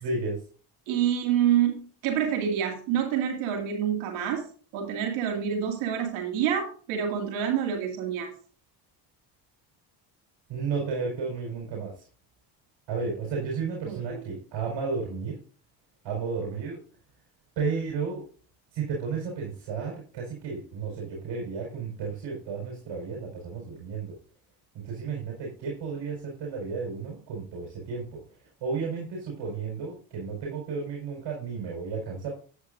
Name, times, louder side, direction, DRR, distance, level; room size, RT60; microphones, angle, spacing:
voice 1, 0.0-0.4 10.5-12.0 12.9-15.4 16.0-16.8 17.6-18.2 18.7-24.2 24.8-28.2 28.6-32.3, right 5 dB, 70° right, -2 dB, 4.7 m, -33 dB
voice 2, 0.9-4.4 4.7-8.3 13.8-14.2, right 9 dB, 85° right, 2 dB, 2.4 m, -27 dB
13.0 x 8.9 x 2.6 m, 0.42 s
supercardioid pair, 75°, 47 cm